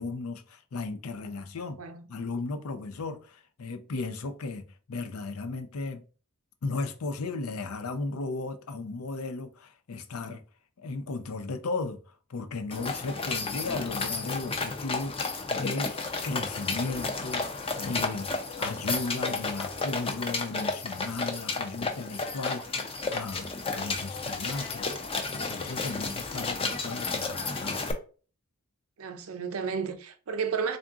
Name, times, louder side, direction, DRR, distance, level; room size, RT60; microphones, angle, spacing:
voice 1, 0.0-1.8 2.1-6.0 6.6-10.4 10.8-12.0 12.3-16.0 16.2-24.9 25.3-27.8, left 3 dB, 80° left, 0.5 m, -35 dB
voice 2, 1.6-2.0 29.0-30.8, right 6 dB, 75° right, 0.6 m, -32 dB
sound 1, 12.7-27.9, left 3 dB, 25° left, 0.5 m, -32 dB
3.6 x 2.5 x 3.6 m
head